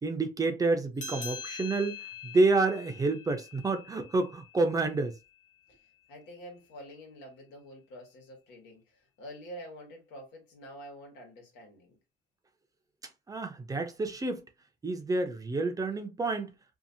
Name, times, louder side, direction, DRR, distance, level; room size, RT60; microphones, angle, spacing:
voice 1, 0.0-5.1 13.3-14.4 14.8-16.5, right 3 dB, 20° right, 0.5 m, -29 dB
sound 1, 1.0-5.9, left 5 dB, 50° left, 0.8 m, -45 dB
voice 2, 6.1-12.0, equal, 85° left, 1.4 m, -47 dB
2.7 x 2.4 x 2.6 m
cardioid pair, 110°, 17 cm